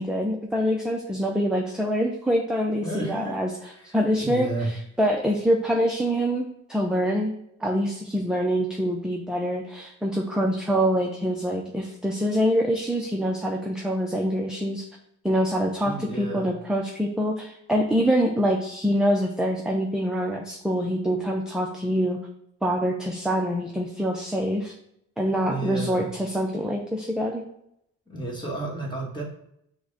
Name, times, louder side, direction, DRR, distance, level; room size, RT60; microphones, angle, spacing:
voice 1, 0.0-3.5 3.9-7.3 7.6-14.9 15.2-22.2 22.6-24.7 25.2-27.4, equal, 5° right, 0 dB, 0.4 m, -25 dB
voice 2, 2.8-3.4 4.2-4.7 15.8-16.5 25.4-26.1 28.1-29.2, right 2 dB, 15° left, -2 dB, 1.3 m, -32 dB
5.9 x 2.2 x 3.9 m, 0.77 s
cardioid pair, 105°, 30 cm